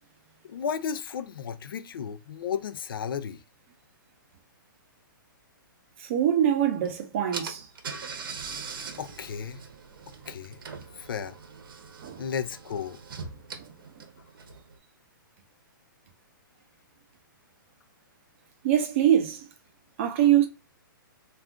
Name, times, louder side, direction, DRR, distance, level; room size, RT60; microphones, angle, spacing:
voice 1, 0.4-3.4 9.0-9.6 10.3-10.6 11.0-11.4 12.2-13.0, left 7 dB, 75° left, 0.5 m, -33 dB
voice 2, 6.0-7.6 12.0-12.2 18.6-19.4 20.0-20.5, right 10 dB, 35° right, 0.5 m, -23 dB
Car / Engine, 6.8-6.9 7.3-14.8, right 5 dB, 75° right, 0.7 m, -41 dB
2.4 x 2.3 x 3.6 m
hypercardioid pair, 160°, 12 cm